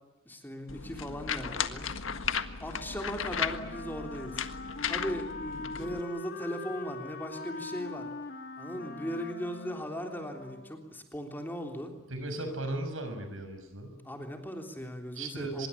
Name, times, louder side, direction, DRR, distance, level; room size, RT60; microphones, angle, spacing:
voice 1, 0.3-1.9 2.1-4.5 4.9-8.1 8.6-11.9 14.0-15.7, equal, 10° left, 4 dB, 3.4 m, -38 dB
sound 1, 0.7-6.0, left 7 dB, 80° left, 1.6 m, -35 dB
Wind instrument woodwind instrument, 2.7-11.0, left 3 dB, 55° left, 2.7 m, -42 dB
voice 2, 12.1-13.9 15.1-15.7, right 2 dB, 85° right, 8 dB, 6.4 m, -36 dB
25.0 x 22.0 x 9.9 m, 1.0 s
head